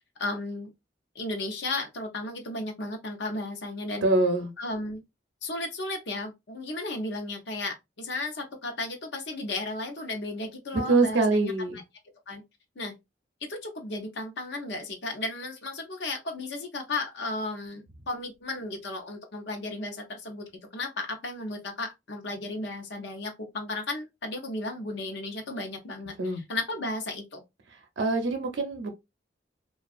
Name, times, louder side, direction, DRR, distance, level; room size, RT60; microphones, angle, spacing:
voice 1, 0.2-0.7 1.1-4.1 4.6-5.0 5.4-11.5 12.3-12.4 12.8-12.9 13.4-27.4, left 2 dB, 75° left, 0.7 m, -34 dB
voice 2, 4.0-4.5 10.7-11.8 26.2-26.4 28.0-28.9, right 3 dB, 85° right, 0.6 m, -24 dB
2.6 x 2.3 x 2.3 m
head